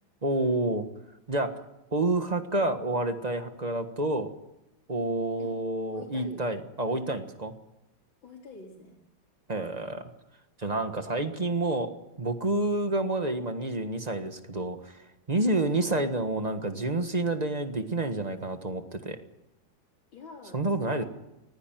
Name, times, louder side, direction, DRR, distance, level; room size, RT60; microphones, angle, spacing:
voice 1, 0.2-0.9 1.3-1.5 1.9-4.3 4.9-7.5 9.5-10.1 10.6-11.9 12.2-15.0 15.3-19.2 20.5-21.0, right 2 dB, 25° right, 7 dB, 1.4 m, -29 dB
voice 2, 5.3-6.5 8.2-9.0 15.5-15.8 20.1-21.1, left 3 dB, 75° left, -4 dB, 4.5 m, -47 dB
19.5 x 16.0 x 9.2 m, 0.91 s
omnidirectional pair, 2.1 m